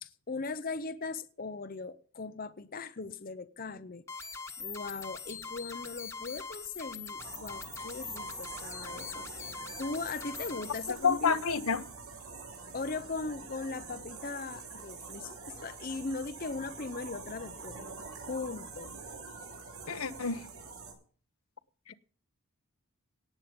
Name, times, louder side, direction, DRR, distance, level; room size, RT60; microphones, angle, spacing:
voice 1, 0.0-4.0 4.6-9.5 9.8-11.4 12.7-17.8 18.2-19.0 21.9-22.0, left 3 dB, 40° left, 0.7 m, -39 dB
sound 1, 4.1-10.9, left 5 dB, 10° left, 1.4 m, -42 dB
sound 2, 7.2-20.9, right 4 dB, 75° right, 8.0 m, -46 dB
voice 2, 10.9-11.9 19.9-20.5, left 6 dB, 75° left, 1.0 m, -29 dB
18.0 x 8.4 x 5.2 m
head